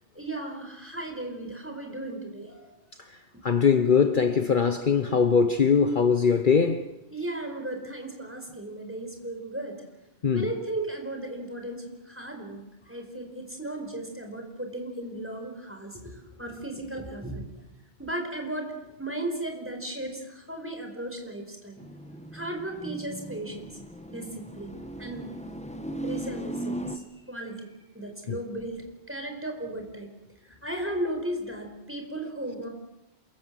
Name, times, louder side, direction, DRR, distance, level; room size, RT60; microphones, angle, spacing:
voice 1, 0.1-2.7 7.1-9.8 10.3-17.5 18.0-18.7 19.0-21.8 22.3-23.7 24.1-24.7 25.0-25.3 26.0-27.7 27.9-30.1 30.6-32.7, right 1 dB, 10° right, 5.0 m, -35 dB
voice 2, 3.4-6.8 10.2-10.5 28.3-28.4, left 6 dB, 50° left, 1.2 m, -21 dB
sound 1, 21.8-27.0, right 1 dB, 5° left, 1.4 m, -37 dB
27.5 x 23.0 x 7.8 m
omnidirectional pair, 1.1 m